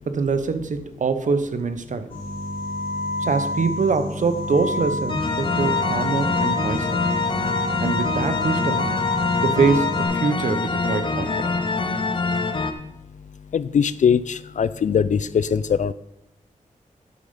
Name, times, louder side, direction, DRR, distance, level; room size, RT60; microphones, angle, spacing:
voice 1, 0.1-2.1 3.2-7.0 7.8-8.9 9.4-11.5, right 4 dB, 65° right, 10 dB, 0.9 m, -24 dB
sound 1, 2.1-10.0, left 2 dB, 80° left, 3.0 m, -28 dB
sound 2, 5.1-12.7, left 4 dB, 35° left, 0.8 m, -24 dB
voice 2, 13.5-15.9, left 7 dB, 65° left, 17 dB, 0.4 m, -21 dB
9.3 x 6.7 x 5.6 m, 0.89 s
wide cardioid pair, 110°, 14 cm